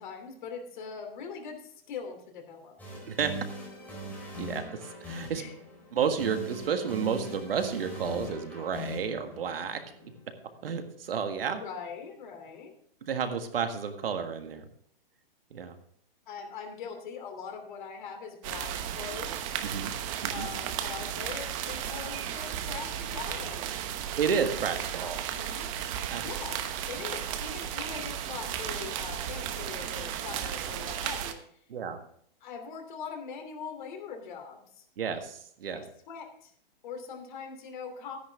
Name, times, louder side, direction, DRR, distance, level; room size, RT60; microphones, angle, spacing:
voice 1, 0.0-2.8 5.3-5.5 11.4-12.7 16.3-19.5 20.3-23.7 25.0-25.7 26.2-31.6 32.4-34.8 35.7-36.5 36.8-38.2, left 6 dB, 55° left, 4 dB, 2.9 m, -42 dB
sound 1, 2.8-10.7, equal, 5° left, 4.0 m, -42 dB
voice 2, 4.4-5.4 5.9-10.1 10.6-11.6 13.0-14.7 15.5-15.8 19.6-19.9 20.2-20.5 24.2-25.2 26.1-26.2 31.7-32.0 35.0-35.8, right 6 dB, 75° right, 7 dB, 1.8 m, -31 dB
sound 2, 18.4-31.3, right 10 dB, 35° right, 1.0 m, -34 dB
13.0 x 10.0 x 3.5 m, 0.65 s
hypercardioid pair, 140°, 29 cm